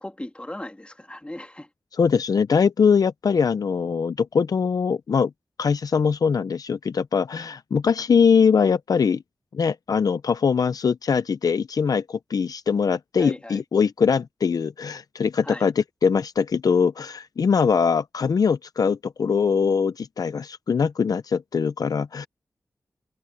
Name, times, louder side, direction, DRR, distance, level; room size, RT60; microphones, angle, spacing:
voice 1, 0.0-1.7 13.2-13.6 15.4-15.7, left 1 dB, 15° left, 2.7 m, -37 dB
voice 2, 2.0-5.3 5.6-9.2 9.5-22.3, left 6 dB, 70° left, 0.6 m, -22 dB
open air
cardioid pair, 50°, 7 cm